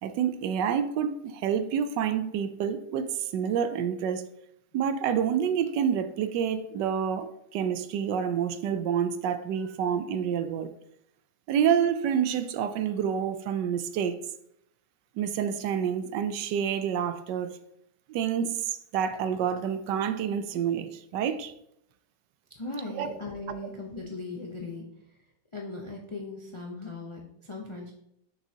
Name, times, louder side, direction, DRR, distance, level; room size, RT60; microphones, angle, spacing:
voice 1, 0.0-4.2 4.7-10.7 11.5-14.2 15.2-17.6 18.1-21.5 22.9-23.1 23.5-23.6, right 8 dB, 80° right, 1.2 m, -28 dB
voice 2, 22.5-25.2 25.5-27.9, left 2 dB, 45° left, 0.4 m, -39 dB
6.3 x 6.1 x 2.8 m
omnidirectional pair, 1.9 m